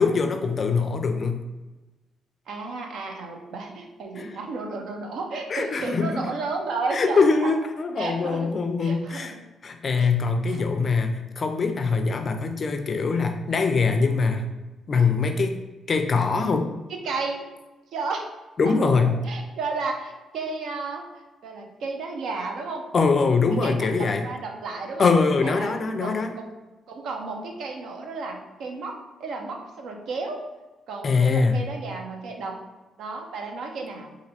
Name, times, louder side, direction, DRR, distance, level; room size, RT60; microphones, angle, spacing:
voice 1, 0.0-1.4 4.2-4.4 5.5-6.3 6.9-9.3 9.6-14.4 14.9-15.6 15.9-16.7 18.6-19.2 22.9-24.3 25.0-26.3 31.0-31.7, left 4 dB, 40° left, 6 dB, 0.3 m, -23 dB
voice 2, 2.5-7.5 8.0-8.5 8.8-9.4 10.0-10.7 16.9-17.4 17.9-18.3 18.6-21.0 21.4-22.8 23.6-25.1 25.4-25.7 26.0-26.5 26.9-30.4 30.9-32.6 33.0-34.1, right 3 dB, 75° right, 2 dB, 0.6 m, -33 dB
4.2 x 2.5 x 2.7 m, 1.1 s
cardioid pair, 115°, 0 cm